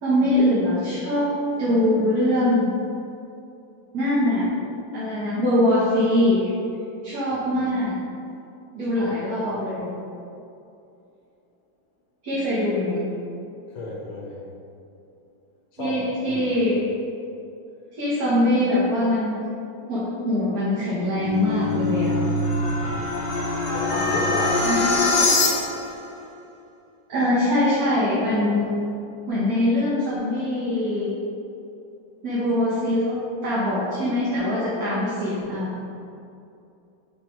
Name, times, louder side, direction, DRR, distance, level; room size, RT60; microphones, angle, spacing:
voice 1, 0.0-2.8 3.9-4.5 4.9-6.5 7.0-7.9 8.7-9.9 12.2-13.0 15.8-16.8 17.9-19.4 19.9-22.1 24.6-24.8 27.1-28.7 29.3-31.1 32.2-33.2 33.4-35.7, left 1 dB, 55° right, -9 dB, 1.7 m, -22 dB
voice 2, 13.7-14.4 15.8-16.4 22.7-23.3 23.7-24.8, left 2 dB, 80° left, -2 dB, 1.8 m, -32 dB
sound 1, 20.8-26.0, left 2 dB, 60° left, 1.7 m, -23 dB
7.4 x 3.4 x 4.6 m, 2.7 s
omnidirectional pair, 2.1 m